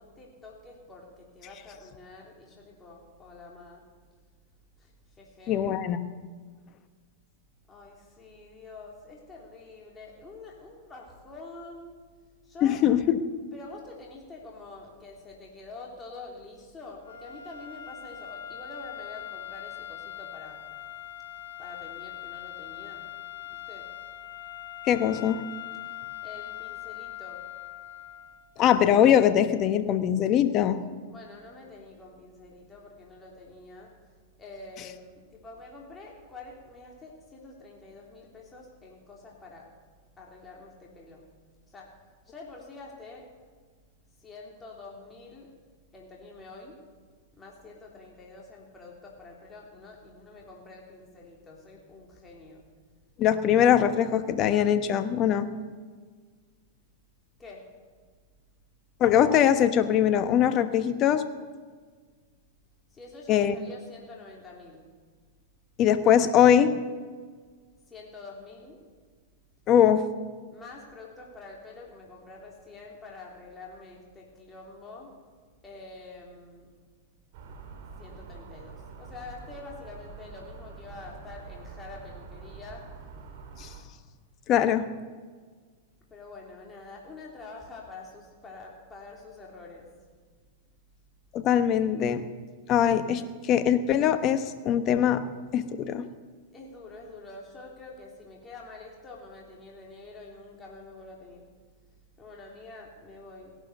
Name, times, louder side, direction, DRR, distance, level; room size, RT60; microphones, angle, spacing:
voice 1, 0.0-3.8 4.8-5.6 7.7-12.0 12.4-12.8 13.5-20.6 21.6-23.1 23.5-23.9 26.2-27.5 31.1-33.9 34.4-39.6 40.2-41.2 41.7-41.9 42.3-43.3 44.2-45.5 45.9-46.8 47.4-52.6 57.4-57.6 62.9-64.9 67.9-68.8 70.5-75.1 75.6-76.7 78.0-82.8 86.1-89.9 96.5-101.5 102.2-103.6, left 3 dB, 20° left, -2 dB, 3.4 m, -46 dB
voice 2, 5.5-6.0 12.6-13.2 24.9-25.4 28.6-30.8 53.2-55.5 59.0-61.2 63.3-63.5 65.8-66.8 69.7-70.0 83.6-83.7 84.5-84.9 91.3-92.2 92.7-95.2 95.5-96.0, left 9 dB, 40° left, 10 dB, 1.2 m, -22 dB
sound 1, 17.0-28.5, left 12 dB, 80° left, 1.9 m, -41 dB
sound 2, 77.3-83.8, right 5 dB, 60° right, 2.9 m, -45 dB
17.5 x 12.0 x 6.7 m, 1.5 s
hypercardioid pair, 110°, 0 cm